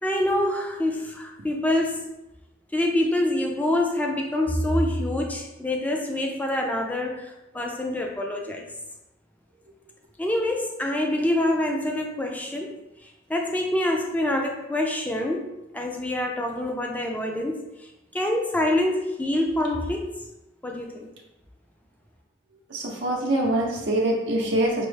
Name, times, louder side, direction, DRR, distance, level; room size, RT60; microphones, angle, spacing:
voice 1, 0.0-2.1 2.7-8.7 10.2-12.7 13.0-15.5 15.7-20.1 20.6-21.1, left 1 dB, 10° left, 1 dB, 0.4 m, -26 dB
voice 2, 22.7-24.9, right 1 dB, 80° right, -1 dB, 0.6 m, -24 dB
5.2 x 2.0 x 3.2 m, 0.94 s
head